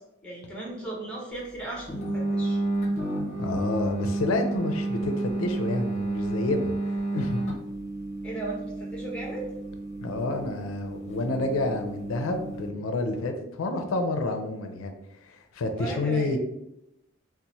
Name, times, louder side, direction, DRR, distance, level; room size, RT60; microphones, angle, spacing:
voice 1, 0.2-2.6 8.2-9.5 15.8-16.3, right 2 dB, 5° left, -3 dB, 0.9 m, -36 dB
sound 1, 1.9-12.7, right 2 dB, 35° left, 0.8 m, -31 dB
voice 2, 3.4-7.4 10.0-14.9 15.2-16.4, left 2 dB, 85° left, 6 dB, 0.4 m, -29 dB
2.9 x 2.0 x 4.0 m, 0.84 s
head